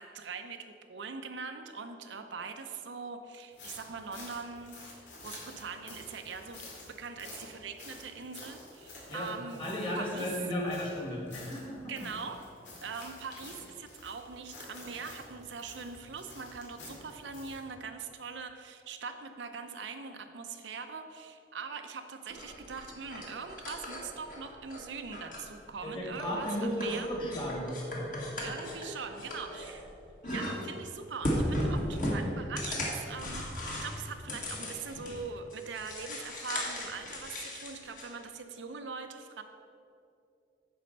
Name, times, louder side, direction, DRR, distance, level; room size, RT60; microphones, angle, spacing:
voice 1, 0.0-9.6 9.9-10.3 11.9-12.4 12.8-27.1 28.4-29.9 30.2-39.4, right 5 dB, 90° right, 6 dB, 0.6 m, -42 dB
sound 1, 3.5-17.7, left 2 dB, 90° left, 2.3 m, -50 dB
voice 2, 9.6-11.9 25.8-28.3, equal, 30° left, -3 dB, 1.8 m, -35 dB
sound 2, 22.3-24.8 25.1-25.8 26.1-29.9 30.2-30.9 31.2-35.2 35.5-38.1, equal, 45° left, 1.6 m, -36 dB
9.4 x 4.3 x 6.6 m, 2.6 s
head